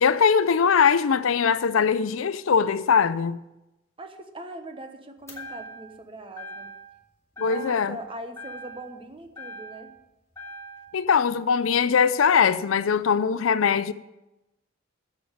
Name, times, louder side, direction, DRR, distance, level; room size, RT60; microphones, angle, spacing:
voice 1, 0.0-3.4 7.4-8.0 10.9-13.9, left 6 dB, 80° left, 0.5 m, -21 dB
voice 2, 4.0-6.7 7.4-9.9, right 1 dB, 25° right, 1.0 m, -41 dB
sound 1, 5.3-6.0 6.4-7.0 7.3-8.0 8.3-10.0 10.3-11.0, equal, 15° left, 2.4 m, -42 dB
8.5 x 7.5 x 8.9 m
head